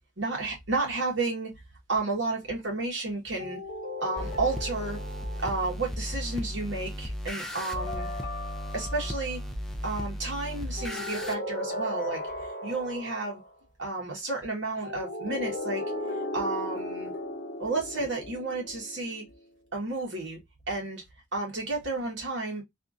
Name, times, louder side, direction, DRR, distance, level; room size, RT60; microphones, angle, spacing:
voice 1, 0.2-1.5 1.9-3.6 4.0-5.0 5.4-8.1 8.7-9.4 9.8-12.2 12.6-13.4 13.8-15.8 16.3-17.1 17.6-19.2 19.7-20.4 20.7-21.0 21.3-22.6, right 3 dB, 70° right, 1.6 m, -31 dB
sound 1, 3.4-5.9 7.5-9.4 10.8-13.5 14.8-19.3, left 1 dB, 50° left, 0.9 m, -37 dB
sound 2, 4.2-11.3, equal, ahead, 0.4 m, -35 dB
3.4 x 2.6 x 2.5 m
head